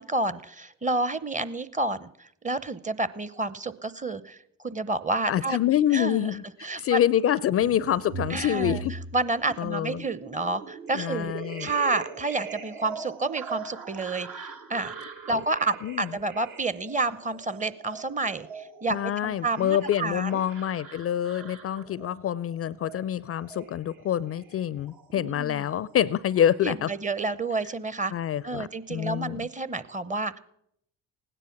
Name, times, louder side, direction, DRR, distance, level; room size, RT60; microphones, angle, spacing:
voice 1, 0.0-5.6 5.9-6.2 6.6-7.0 8.3-8.8 9.1-11.3 11.6-14.9 15.3-20.4 25.2-25.6 26.6-28.1 28.4-30.4, right 3 dB, 20° right, 0.7 m, -30 dB
voice 2, 5.3-8.9 9.6-10.0 10.9-11.7 15.8-16.1 18.9-26.9 28.1-29.4, left 10 dB, 40° left, 0.4 m, -26 dB
sound 1, 7.6-25.3 25.7-26.5, right 4 dB, 70° right, 1.9 m, -41 dB
16.5 x 9.9 x 5.9 m
hypercardioid pair, 50°, 35 cm